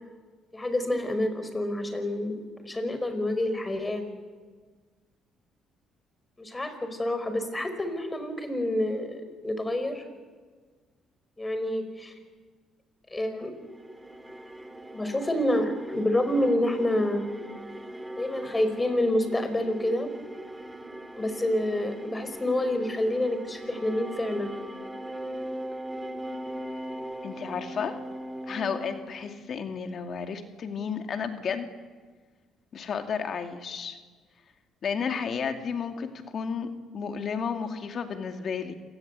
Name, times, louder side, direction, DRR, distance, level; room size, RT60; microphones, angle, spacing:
voice 1, 0.5-2.4 2.6-4.0 6.4-10.0 11.4-12.1 13.1-13.6 14.9-17.2 18.2-20.1 21.2-24.5, left 1 dB, 20° left, 9 dB, 5.2 m, -28 dB
sound 1, 13.6-29.9, right 1 dB, 10° right, 2.9 m, -40 dB
voice 2, 27.2-27.9 28.5-31.7 32.7-34.0 34.8-38.7, left 6 dB, 55° left, 6 dB, 2.3 m, -32 dB
27.5 x 18.5 x 8.4 m, 1.5 s
supercardioid pair, 75°, 0 cm